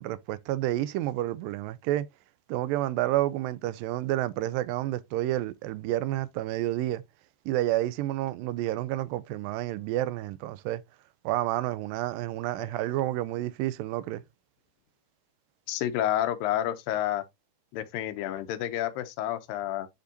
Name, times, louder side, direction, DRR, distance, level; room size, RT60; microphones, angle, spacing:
voice 1, 0.0-2.1 2.5-7.0 7.5-10.8 11.2-14.2, right 15 dB, 90° right, 2.3 m, -29 dB
voice 2, 15.7-17.2 17.7-19.9, left 12 dB, 85° left, 2.5 m, -29 dB
10.0 x 3.6 x 2.7 m
omnidirectional pair, 3.9 m